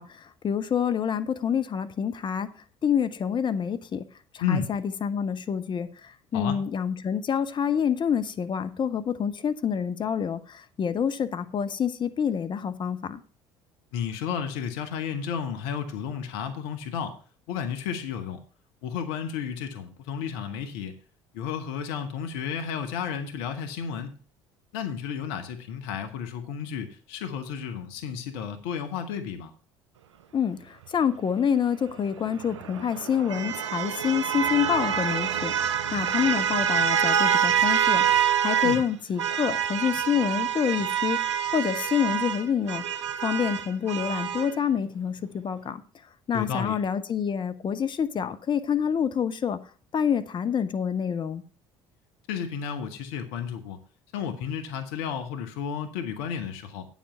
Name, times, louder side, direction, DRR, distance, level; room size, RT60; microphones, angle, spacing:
voice 1, 0.0-2.5 2.8-4.0 4.3-13.2 30.3-45.8 46.3-49.6 49.9-51.4, left 8 dB, 30° left, 0.8 m, -27 dB
voice 2, 13.9-17.2 17.5-18.4 18.8-20.9 21.3-24.2 24.7-29.5 38.6-38.8 46.3-46.8 52.3-53.8 54.1-56.9, left 7 dB, 60° left, 1.0 m, -32 dB
sound 1, 32.2-38.9 39.2-44.5, right 8 dB, 75° right, 0.5 m, -26 dB
8.8 x 7.3 x 5.5 m
figure-of-eight pair, 60°, 15 cm